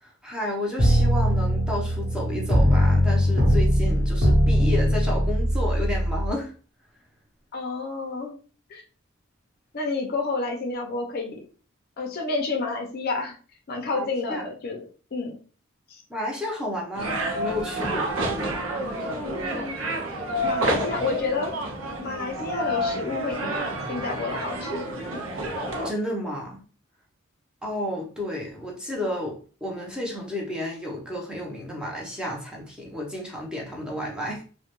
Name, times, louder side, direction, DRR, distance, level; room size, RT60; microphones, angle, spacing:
voice 1, 0.0-6.5 13.9-14.5 16.1-18.1 25.8-26.6 27.6-34.4, left 1 dB, 5° right, -2 dB, 0.6 m, -32 dB
sound 1, 0.8-6.3, equal, 55° right, 0.9 m, -21 dB
voice 2, 7.5-8.4 8.7-8.8 9.7-11.4 12.0-13.4 13.7-14.9 15.1-15.4 15.9-16.0 19.2-19.8 20.4-21.5 22.0-25.3, left 3 dB, 50° left, 2 dB, 0.5 m, -30 dB
sound 2, 17.0-25.9, right 1 dB, 85° right, 0.5 m, -29 dB
2.2 x 2.1 x 2.9 m, 0.38 s
head